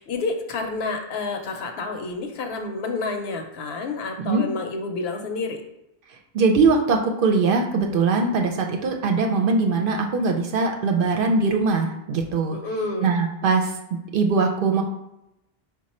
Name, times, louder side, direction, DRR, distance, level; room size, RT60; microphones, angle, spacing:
voice 1, 0.0-5.6 12.5-13.1, left 3 dB, 80° left, 4 dB, 0.8 m, -29 dB
voice 2, 6.3-12.6 13.0-14.8, right 4 dB, 65° right, 3 dB, 0.7 m, -21 dB
4.8 x 2.2 x 4.2 m, 0.87 s
omnidirectional pair, 1.0 m